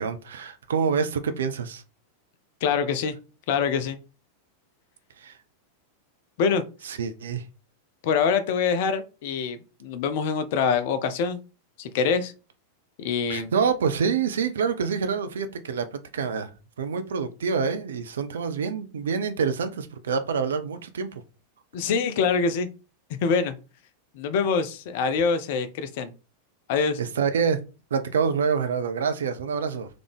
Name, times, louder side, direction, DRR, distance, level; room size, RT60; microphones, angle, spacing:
voice 1, 0.0-1.8 5.2-5.4 6.8-7.4 13.3-16.5 16.8-21.2 27.0-27.6 27.9-29.9, right 6 dB, 65° right, 0.6 m, -26 dB
voice 2, 2.6-3.1 3.5-4.0 6.4-6.6 8.0-11.4 11.8-12.3 13.0-13.5 21.7-22.7 23.2-23.5 24.1-26.1 26.7-27.0, left 5 dB, 50° left, 0.6 m, -25 dB
3.8 x 3.4 x 3.4 m
figure-of-eight pair, 90°, 0 cm